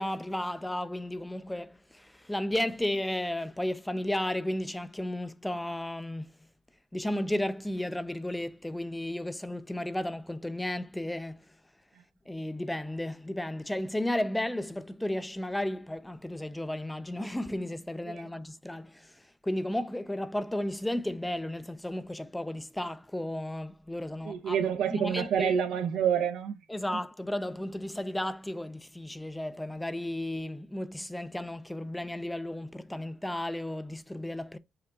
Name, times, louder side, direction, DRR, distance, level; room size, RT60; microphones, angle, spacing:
voice 1, 0.0-6.3 6.9-11.4 12.3-25.5 26.7-34.6, left 1 dB, 10° left, 0.3 m, -34 dB
voice 2, 24.2-26.6, right 8 dB, 85° right, 0.7 m, -28 dB
5.7 x 2.3 x 3.7 m
cardioid pair, 90°, 0 cm